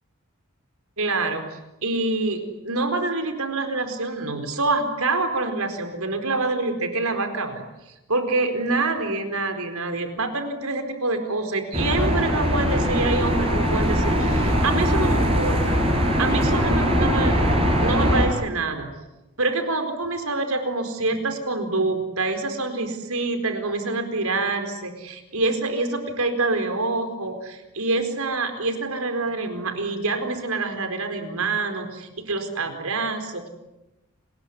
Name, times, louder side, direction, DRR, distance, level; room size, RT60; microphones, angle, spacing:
voice 1, 1.0-7.6 8.1-15.8 16.2-17.4 17.8-18.9 19.4-33.5, right 3 dB, 80° right, 7 dB, 4.5 m, -26 dB
sound 1, 11.7-18.3, equal, 25° right, 6.5 m, -21 dB
29.5 x 21.0 x 9.5 m, 0.98 s
head